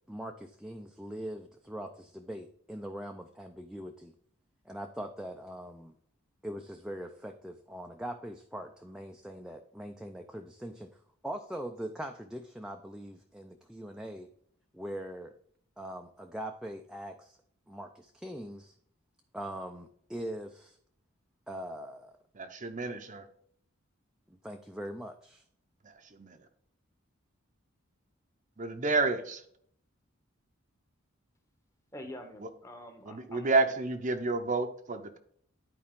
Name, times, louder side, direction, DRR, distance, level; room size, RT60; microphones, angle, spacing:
voice 1, 0.1-4.1 4.7-5.9 6.4-10.9 11.2-14.3 14.7-15.3 15.8-17.4 17.7-18.7 19.3-20.8 21.5-22.1 24.3-25.4, equal, 5° right, 3 dB, 0.5 m, -41 dB
voice 2, 22.3-23.2 26.1-26.4 28.6-29.4 33.1-35.2, right 3 dB, 40° right, 7 dB, 0.7 m, -30 dB
voice 3, 31.9-33.9, left 1 dB, 15° left, 6 dB, 1.1 m, -46 dB
11.0 x 4.7 x 3.7 m, 0.63 s
head